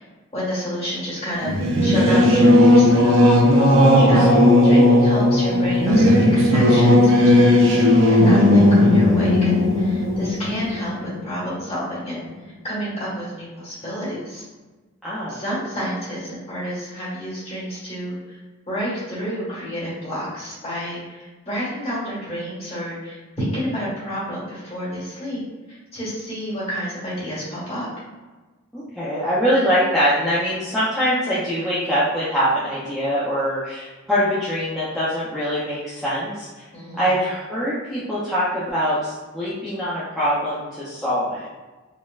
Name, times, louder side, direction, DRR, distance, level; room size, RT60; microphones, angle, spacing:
voice 1, 0.3-3.1 3.4-3.6 4.0-4.3 4.6-12.2 12.6-14.4 15.3-18.4 18.7-25.4 25.7-27.9 36.7-37.1, equal, 30° left, -9 dB, 1.3 m, -29 dB
Singing / Musical instrument, 1.4-11.5, left 1 dB, 60° right, 0.5 m, -15 dB
voice 2, 3.8-4.3 15.0-15.4 28.7-36.6 37.0-41.6, equal, ahead, -12 dB, 0.5 m, -23 dB
4.1 x 2.1 x 2.3 m, 1.2 s
head